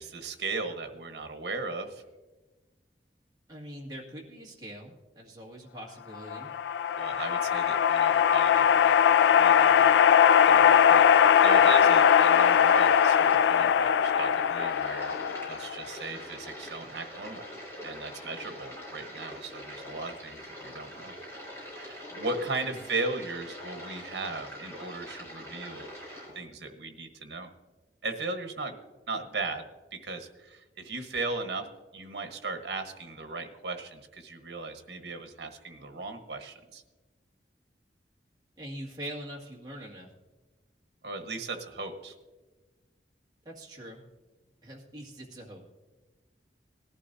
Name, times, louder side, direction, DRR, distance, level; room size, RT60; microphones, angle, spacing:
voice 1, 0.0-2.0 7.0-8.9 9.4-10.0 10.5-15.2 15.5-17.5 17.8-21.1 21.7-25.9 26.3-27.5 28.0-28.8 29.1-31.7 31.9-36.8 41.0-42.1, right 3 dB, 75° right, 6 dB, 1.2 m, -37 dB
voice 2, 3.5-6.5 38.6-40.1 43.5-44.0 44.6-45.6, equal, 20° right, -3 dB, 2.0 m, -43 dB
sound 1, 6.3-15.8, left 8 dB, 85° left, 0.3 m, -21 dB
sound 2, 10.8-26.3, equal, 15° left, 4.5 m, -44 dB
19.0 x 11.5 x 2.7 m, 1.2 s
head